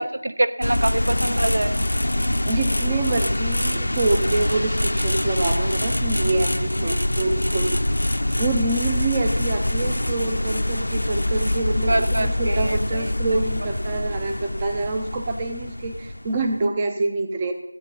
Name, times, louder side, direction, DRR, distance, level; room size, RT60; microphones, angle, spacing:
voice 1, 0.0-1.8 6.8-7.0 11.9-13.1, right 2 dB, 55° right, 12 dB, 0.8 m, -25 dB
sound 1, 0.6-16.7, left 1 dB, 85° left, 0.7 m, -24 dB
voice 2, 2.4-7.8 8.4-17.5, right 2 dB, 15° right, 4 dB, 0.6 m, -26 dB
15.0 x 8.2 x 5.5 m, 0.88 s
figure-of-eight pair, 175°, 0 cm